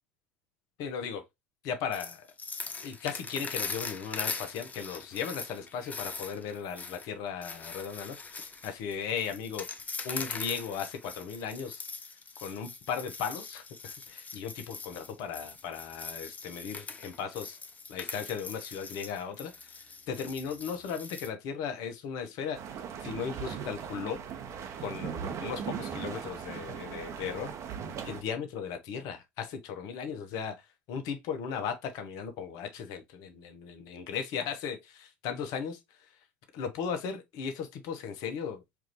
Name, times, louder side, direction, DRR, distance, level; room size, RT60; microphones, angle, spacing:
voice 1, 0.8-1.2 1.6-2.2 2.8-8.2 8.6-9.7 10.0-11.8 12.4-17.6 17.9-22.6 23.0-24.2 24.8-27.5 28.0-30.5 30.9-36.1 36.5-38.6, left 7 dB, 60° left, 0.9 m, -36 dB
sound 1, 1.9-21.3, left 4 dB, 20° left, 0.6 m, -41 dB
sound 2, 22.5-28.2, right 7 dB, 50° right, 0.8 m, -38 dB
4.6 x 2.6 x 3.0 m
hypercardioid pair, 80°, 7 cm